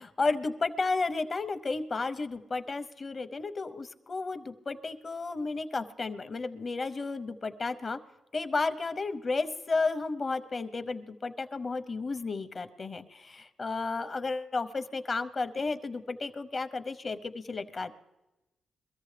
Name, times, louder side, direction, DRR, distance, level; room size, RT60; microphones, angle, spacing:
voice 1, 0.0-8.0 8.3-17.9, left 3 dB, 40° left, 11 dB, 0.8 m, -33 dB
22.5 x 14.0 x 3.3 m, 1.0 s
cardioid pair, 85°, 0 cm